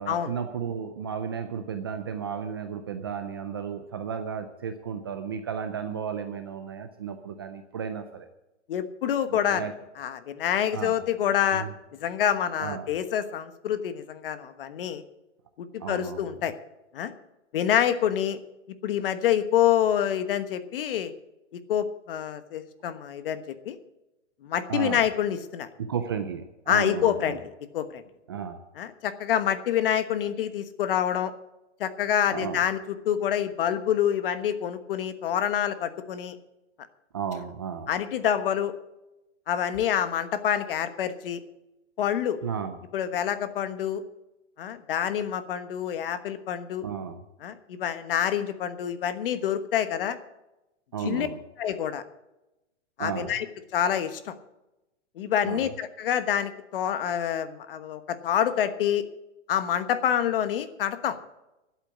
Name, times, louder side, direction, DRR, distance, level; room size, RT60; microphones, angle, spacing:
voice 1, 0.0-8.3 9.3-9.7 10.7-11.0 11.5-11.7 12.6-12.9 15.8-16.4 24.7-25.1 25.8-27.4 28.3-28.6 32.3-32.6 37.1-37.9 42.4-42.8 46.8-47.2 50.9-51.4 53.0-53.3 55.4-55.7, right 7 dB, 20° right, 8 dB, 0.4 m, -33 dB
voice 2, 8.7-9.6 10.0-11.7 12.0-15.0 15.6-16.5 16.9-17.1 17.5-18.4 18.8-21.1 21.7-23.8 24.4-25.7 26.7-27.4 27.7-28.0 28.8-31.3 31.8-36.4 37.9-38.7 39.5-41.4 42.0-42.4 42.9-44.0 44.6-46.8 47.4-50.2 51.0-51.3 51.6-52.0 53.0-53.5 53.7-54.3 55.2-59.0 59.5-61.2, left 10 dB, 50° left, 12 dB, 1.2 m, -27 dB
12.0 x 8.4 x 8.6 m, 0.95 s
hypercardioid pair, 160°, 36 cm